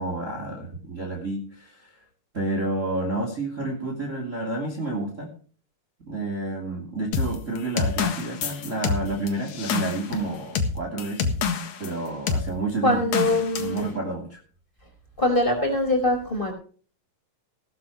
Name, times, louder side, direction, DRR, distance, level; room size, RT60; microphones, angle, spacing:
voice 1, 0.0-2.0 2.3-5.3 6.1-11.3 11.8-13.0 13.5-14.4, right 2 dB, 20° right, 1 dB, 3.0 m, -30 dB
sound 1, 7.1-11.9 12.3-12.5 13.1-13.8, left 5 dB, 60° left, 2.7 m, -27 dB
voice 2, 12.8-13.8 15.2-16.5, left 1 dB, 15° left, 2 dB, 4.6 m, -23 dB
17.5 x 12.5 x 3.1 m, 0.42 s
omnidirectional pair, 4.0 m